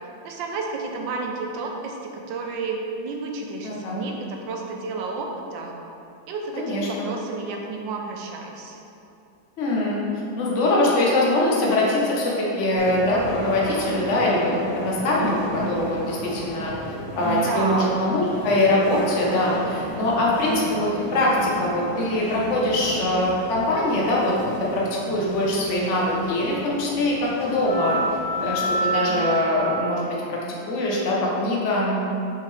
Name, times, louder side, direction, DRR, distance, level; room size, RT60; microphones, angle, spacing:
voice 1, 0.2-5.8 6.3-8.8 17.3-17.9, right 3 dB, 80° right, 1 dB, 1.5 m, -31 dB
voice 2, 3.6-4.0 6.5-7.1 9.6-10.0 10.4-16.7 17.2-24.3 24.7-28.0 28.4-30.0 30.3-30.4 30.7-32.1, left 1 dB, 45° left, -4 dB, 1.2 m, -23 dB
sound 1, 12.8-29.9, right 2 dB, 20° right, 0.8 m, -32 dB
5.8 x 5.6 x 3.3 m, 2.8 s
omnidirectional pair, 2.0 m